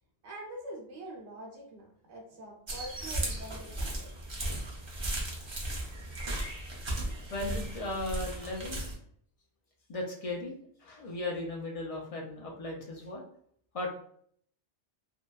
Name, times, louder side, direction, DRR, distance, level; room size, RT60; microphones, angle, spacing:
voice 1, 0.2-4.1, right 1 dB, 80° right, -2 dB, 0.8 m, -45 dB
sound 1, 2.7-8.9, right 1 dB, 35° right, 0.5 m, -36 dB
voice 2, 7.3-8.8 9.9-13.2 13.7-13.9, left 2 dB, 65° left, -1 dB, 0.3 m, -36 dB
2.7 x 2.1 x 2.2 m, 0.62 s
omnidirectional pair, 1.1 m